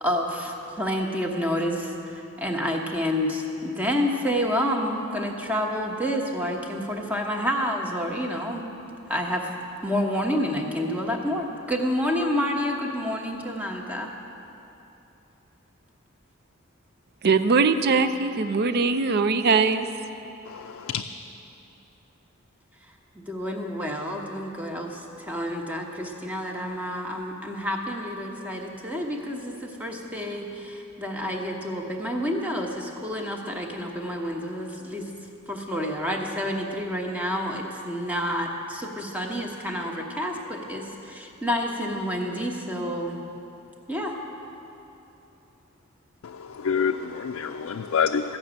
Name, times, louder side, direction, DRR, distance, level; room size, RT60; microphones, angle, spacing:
voice 1, 0.0-8.7 9.1-9.5 9.8-14.1 23.1-35.1 35.5-43.2 43.9-44.2, equal, 5° right, 1 dB, 1.1 m, -29 dB
voice 2, 17.2-19.9, right 4 dB, 50° right, 10 dB, 0.5 m, -21 dB
voice 3, 20.4-21.0 46.2-48.4, left 6 dB, 70° left, 4 dB, 0.4 m, -27 dB
14.0 x 6.1 x 8.7 m, 2.9 s
head